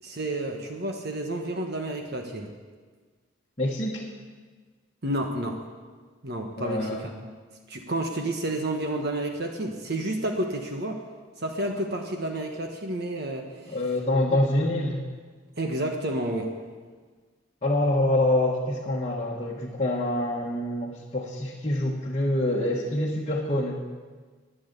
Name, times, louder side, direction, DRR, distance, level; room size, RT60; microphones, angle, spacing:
voice 1, 0.0-2.5 5.0-5.6 6.2-7.1 7.7-11.0 11.4-13.8 14.3-14.4 15.6-16.5, right 1 dB, 50° right, 3 dB, 1.3 m, -30 dB
voice 2, 3.6-4.0 6.6-7.1 13.7-15.0 17.6-23.8, left 1 dB, 30° left, -4 dB, 1.4 m, -26 dB
12.5 x 10.5 x 8.3 m, 1.5 s
head